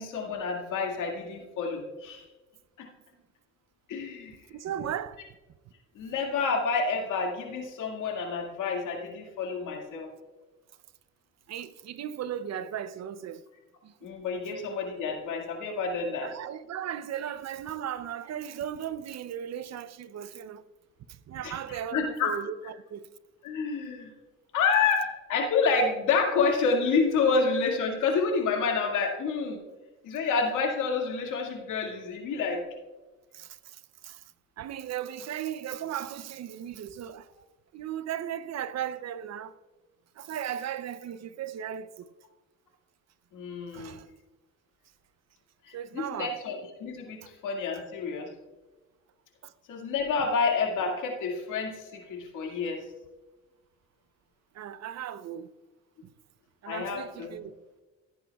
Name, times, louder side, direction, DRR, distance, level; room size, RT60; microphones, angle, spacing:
voice 1, 0.0-2.2 2.8-2.9 3.9-4.4 6.0-10.1 14.0-16.3 21.4-22.3 23.4-24.1 24.5-29.6 30.0-32.6 43.3-44.0 45.7-48.3 49.7-52.8 56.7-57.4, left 4 dB, 85° left, 2.1 m, -29 dB
voice 2, 4.5-5.2 11.5-13.4 13.8-13.9 16.2-20.6 21.1-23.1 33.3-34.2 34.6-37.3 37.7-39.5 40.2-42.1 43.7-44.1 45.7-46.4 47.2-47.3 49.4-49.5 54.5-55.5 56.6-57.5, right 10 dB, 60° right, 0.6 m, -36 dB
15.5 x 9.4 x 2.3 m
cardioid pair, 90°, 30 cm